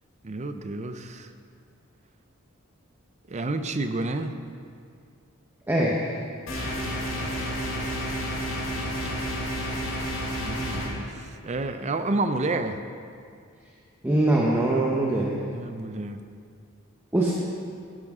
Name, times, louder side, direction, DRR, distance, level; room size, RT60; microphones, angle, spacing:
voice 1, 0.2-1.3 3.3-4.4 10.4-12.8 15.5-16.2, right 2 dB, 30° right, 9 dB, 0.5 m, -30 dB
voice 2, 5.7-6.1 14.0-15.4 17.1-17.3, right 1 dB, 10° right, -4 dB, 0.9 m, -22 dB
sound 1, 6.5-10.9, equal, 65° left, 2.6 m, -30 dB
12.5 x 11.0 x 3.7 m, 2.3 s
head